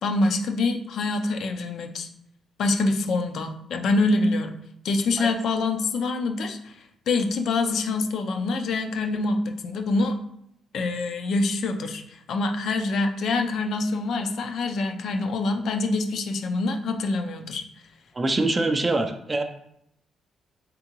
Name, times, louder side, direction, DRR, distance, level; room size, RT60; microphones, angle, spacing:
voice 1, 0.0-2.1 2.6-4.5 4.8-6.8 7.1-10.2 10.7-17.6, left 3 dB, 65° left, 5 dB, 0.5 m, -25 dB
voice 2, 18.2-19.4, right 2 dB, 25° right, 6 dB, 0.4 m, -24 dB
3.7 x 3.6 x 2.9 m, 0.74 s
cardioid pair, 90°, 0 cm